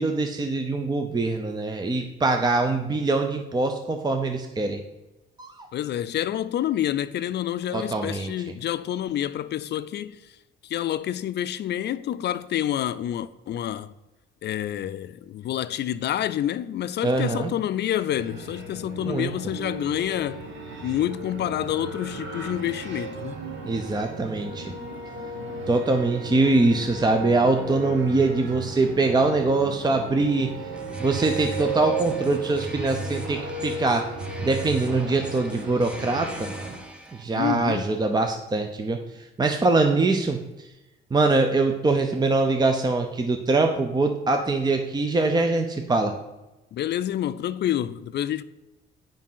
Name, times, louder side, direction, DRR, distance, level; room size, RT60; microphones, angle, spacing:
voice 1, 0.0-4.8 5.4-5.7 7.7-8.3 17.0-17.5 19.1-19.3 23.6-24.7 25.7-30.5 31.0-34.1 34.4-36.5 37.1-39.0 39.4-40.4 41.1-46.1, right 3 dB, 20° right, 0.7 m, -23 dB
voice 2, 5.7-10.2 10.6-13.9 14.4-20.4 20.8-23.4 37.3-37.9 46.7-48.4, left 11 dB, 60° left, 0.4 m, -28 dB
sound 1, 18.1-36.8, right 3 dB, 70° right, 1.6 m, -35 dB
sound 2, 30.7-37.2, right 1 dB, 5° right, 1.1 m, -38 dB
7.4 x 5.3 x 5.5 m
cardioid pair, 90°, 20 cm